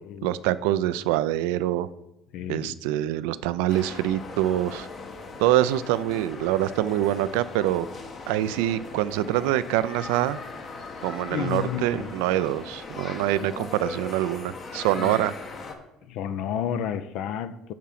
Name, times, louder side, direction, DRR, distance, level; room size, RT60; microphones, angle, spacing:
voice 1, 0.2-1.9 2.5-4.9 5.4-7.9 8.3-10.4 11.0-15.4, right 14 dB, 80° right, 15 dB, 0.3 m, -25 dB
voice 2, 2.3-2.8 11.0-11.1 11.3-12.1 13.3-13.5 14.9-15.1 16.0-17.7, left 9 dB, 70° left, 12 dB, 0.5 m, -31 dB
sound 1, 3.7-15.7, left 3 dB, 50° left, 1.2 m, -39 dB
10.0 x 3.7 x 5.8 m, 0.95 s
supercardioid pair, 75°, 0 cm